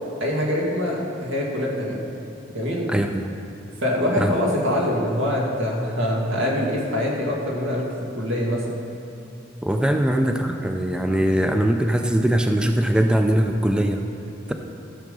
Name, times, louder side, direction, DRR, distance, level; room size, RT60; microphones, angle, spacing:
voice 1, 0.2-2.1 2.5-2.9 3.8-8.7, left 1 dB, 85° right, -3 dB, 2.2 m, -24 dB
voice 2, 2.9-3.3 4.2-4.3 9.6-14.0, right 1 dB, 5° right, 5 dB, 0.4 m, -21 dB
13.5 x 7.2 x 5.4 m, 2.8 s
head